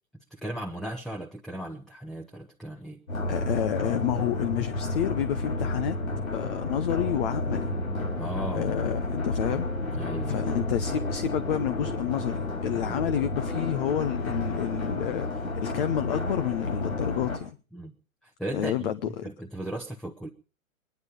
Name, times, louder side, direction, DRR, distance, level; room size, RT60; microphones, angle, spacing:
voice 1, 0.3-3.0 8.2-8.7 9.9-10.5 17.7-17.9 18.2-18.9 19.2-20.3, right 1 dB, ahead, 1.0 m, -36 dB
sound 1, 3.1-17.4, left 2 dB, 75° left, 5.3 m, -31 dB
voice 2, 3.3-6.0 6.3-7.7 8.5-10.0 10.3-17.6 18.5-19.3, left 11 dB, 40° left, 0.8 m, -30 dB
22.5 x 10.5 x 5.3 m
figure-of-eight pair, 110°, 41 cm